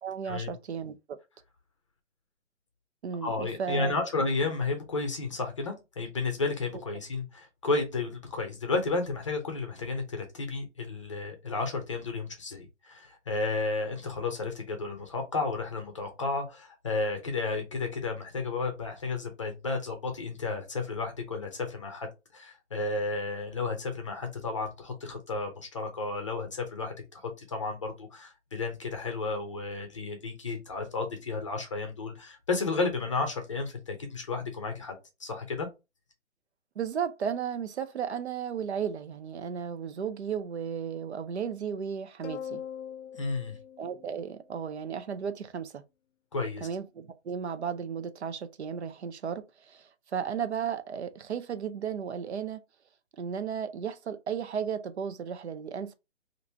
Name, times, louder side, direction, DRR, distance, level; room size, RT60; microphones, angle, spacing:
voice 1, 0.0-1.2 3.0-4.0 36.8-42.6 43.8-45.8 46.6-52.6 53.2-55.9, right 7 dB, 65° right, 0.6 m, -34 dB
voice 2, 3.2-35.7 43.2-43.6 46.3-46.7, left 3 dB, 25° left, 0.6 m, -32 dB
sound 1, 42.2-44.8, left 8 dB, 75° left, 0.6 m, -42 dB
2.9 x 2.6 x 3.3 m
hypercardioid pair, 160°, 36 cm